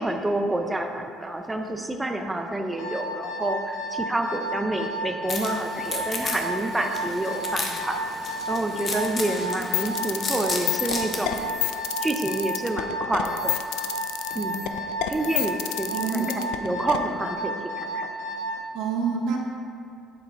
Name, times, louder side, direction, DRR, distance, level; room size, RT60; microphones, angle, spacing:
voice 1, 0.0-8.0 8.5-11.5 12.0-13.5 14.3-14.8 15.0-18.1, right 1 dB, 10° right, 4 dB, 0.5 m, -28 dB
Alarm, 2.8-18.6, right 1 dB, 65° left, 1.4 m, -32 dB
sound 1, 5.3-11.5, left 3 dB, 40° left, 1.1 m, -34 dB
sound 2, 9.5-17.0, left 15 dB, 85° left, 0.4 m, -29 dB
voice 2, 15.9-16.5 18.7-19.4, right 5 dB, 75° right, 1 dB, 1.1 m, -27 dB
11.0 x 4.7 x 3.5 m, 2.4 s
cardioid pair, 100°, 0 cm